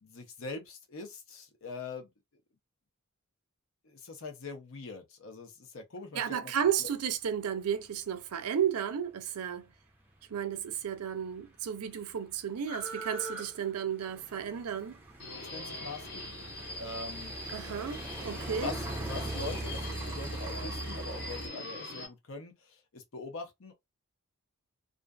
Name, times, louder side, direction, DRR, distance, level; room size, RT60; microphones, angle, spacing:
voice 1, 0.0-2.1 3.8-6.5 6.8-6.9 15.4-16.4 16.7-17.3 18.4-23.7, left 3 dB, 65° left, 0.7 m, -43 dB
voice 2, 6.1-9.7 10.3-15.0 17.5-18.7, right 8 dB, 85° right, 0.5 m, -33 dB
sound 1, 10.8-10.9 11.1-21.5, right 2 dB, 10° right, 0.5 m, -40 dB
Subway metro underground, 15.2-22.1, left 1 dB, 50° left, 1.0 m, -42 dB
2.5 x 2.5 x 2.2 m
head